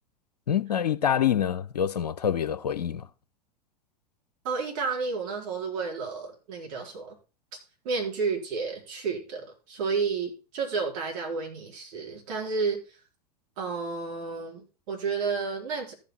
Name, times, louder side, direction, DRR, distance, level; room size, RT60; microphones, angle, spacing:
voice 1, 0.5-3.1, left 9 dB, 75° left, 0.7 m, -26 dB
voice 2, 4.4-7.2 7.8-12.8 13.6-15.9, right 5 dB, 55° right, 4.0 m, -31 dB
14.0 x 5.2 x 4.2 m
figure-of-eight pair, 90°, 21 cm